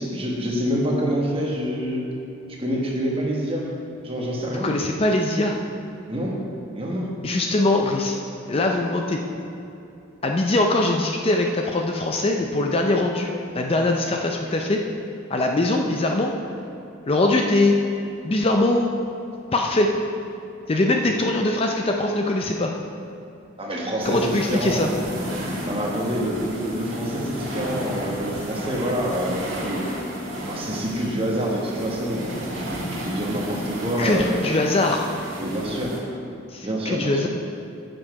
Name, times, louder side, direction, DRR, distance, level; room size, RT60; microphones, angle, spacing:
voice 1, 0.0-2.0 2.5-3.7 4.0-4.7 6.1-6.4 6.7-7.1 21.1-21.2 23.6-24.9 25.6-29.8 30.5-34.5 35.4-36.0 36.6-37.3, equal, 25° right, -2 dB, 1.2 m, -26 dB
voice 2, 4.5-5.6 7.2-8.2 8.5-9.2 10.2-14.8 15.3-16.4 17.1-17.8 18.2-18.9 19.5-20.0 20.7-22.7 24.0-24.9 34.0-35.0 36.5-37.3, left 2 dB, 25° left, 2 dB, 0.4 m, -22 dB
sound 1, 24.0-36.0, right 1 dB, 70° right, 1.9 m, -33 dB
7.6 x 7.3 x 4.8 m, 2.7 s
head